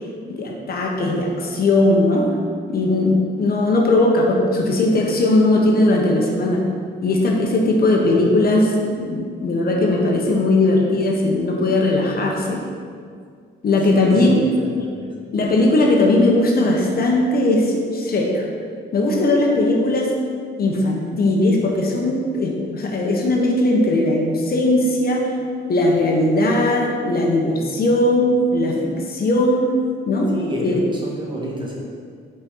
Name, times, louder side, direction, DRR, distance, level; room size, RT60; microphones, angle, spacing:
voice 1, 0.4-2.3 2.7-6.6 7.0-12.6 13.6-14.3 15.3-18.5 18.9-20.1 20.6-25.3 25.7-29.6 30.1-30.8, left 2 dB, 50° left, 0 dB, 1.1 m, -18 dB
voice 2, 13.9-15.1 30.3-31.7, right 1 dB, 25° right, -4 dB, 1.7 m, -30 dB
5.7 x 4.4 x 5.5 m, 2.1 s
cardioid pair, 90°, 20 cm